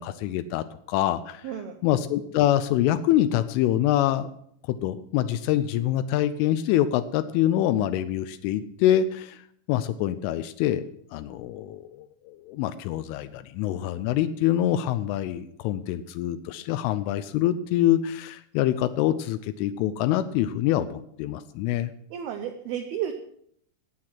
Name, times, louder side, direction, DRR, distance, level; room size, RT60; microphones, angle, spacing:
voice 1, 0.0-1.5 1.8-4.3 4.7-9.4 9.7-10.9 11.1-21.9, left 12 dB, 85° left, 11 dB, 3.2 m, -25 dB
voice 2, 1.4-1.8 22.1-23.2, right 9 dB, 80° right, 6 dB, 2.3 m, -32 dB
18.5 x 7.6 x 6.0 m, 0.67 s
omnidirectional pair, 5.6 m